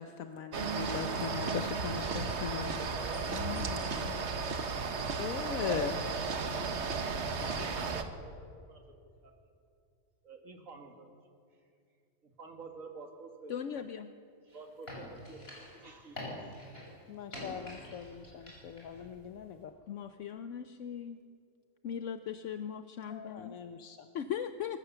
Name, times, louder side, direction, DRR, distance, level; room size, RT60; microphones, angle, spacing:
voice 1, 0.0-2.8 3.3-4.2 5.2-6.0 7.4-7.5 7.8-7.9 17.1-19.7 23.1-24.1, left 8 dB, 85° left, 7 dB, 1.2 m, -40 dB
sound 1, 0.5-8.0, right 4 dB, 55° right, 1.4 m, -34 dB
voice 2, 2.3-3.6 3.9-4.3 5.4-5.9 7.4-8.8 9.2-9.3 10.2-11.1 12.2-13.7 14.5-16.6, right 4 dB, 75° right, 3 dB, 2.5 m, -50 dB
sound 2, 2.6-8.1, right 1 dB, 30° right, 3.1 m, -47 dB
voice 3, 13.5-14.1 19.9-21.2 21.8-23.6 24.1-24.8, left 8 dB, 70° left, 9 dB, 1.0 m, -39 dB
sound 3, 14.5-19.1 19.3-19.4, left 1 dB, 45° left, 6.0 m, -46 dB
25.5 x 15.0 x 7.0 m, 2.4 s
omnidirectional pair, 1.4 m